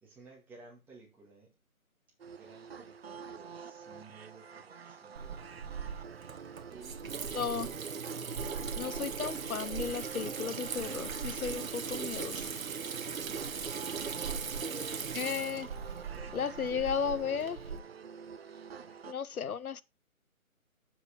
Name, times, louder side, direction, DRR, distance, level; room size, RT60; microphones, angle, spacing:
voice 1, 0.0-1.5 2.2-5.4 6.7-7.9 14.6-15.1 16.1-17.3, right 2 dB, 5° right, 1.9 m, -54 dB
sound 1, 2.2-19.1, right 6 dB, 45° right, 0.7 m, -47 dB
Water tap faucet / Sink (filling or washing), 5.2-17.8, right 6 dB, 70° right, 1.1 m, -39 dB
voice 2, 7.3-7.7 8.8-12.5 15.1-15.7 16.3-17.6 19.1-19.8, left 6 dB, 80° left, 0.9 m, -34 dB
7.3 x 6.6 x 5.0 m
figure-of-eight pair, 155°, 43 cm